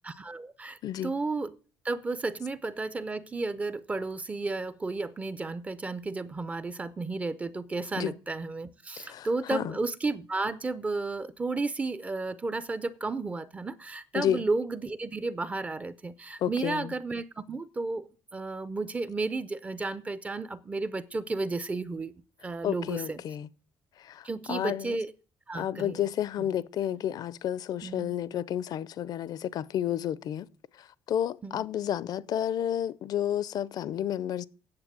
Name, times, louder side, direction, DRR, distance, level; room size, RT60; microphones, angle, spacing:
voice 1, 0.0-1.5 1.8-18.0 18.3-22.1 22.4-23.2 24.2-25.1 25.5-26.0 27.8-28.1 31.4-31.6, right 3 dB, 15° right, 0.5 m, -33 dB
voice 2, 9.0-9.8 14.1-14.4 16.4-16.9 22.6-23.5 24.0-25.0 25.5-30.5 30.8-34.4, left 10 dB, 50° left, 0.5 m, -31 dB
9.6 x 7.5 x 7.3 m
cardioid pair, 175°, 9 cm